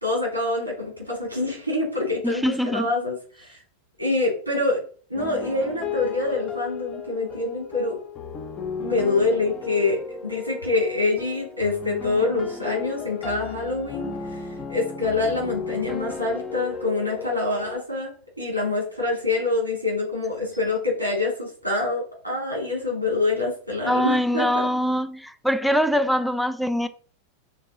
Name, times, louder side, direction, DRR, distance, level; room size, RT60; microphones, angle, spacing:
voice 1, 0.0-3.6 4.0-4.8 5.1-8.0 8.8-14.4 14.7-24.7, left 3 dB, 90° right, 3.1 m, -26 dB
voice 2, 2.2-2.9 23.9-26.9, equal, ahead, 0.4 m, -23 dB
sound 1, 5.1-17.8, left 5 dB, 30° left, 1.0 m, -35 dB
6.6 x 3.5 x 4.1 m
figure-of-eight pair, 90°, 0 cm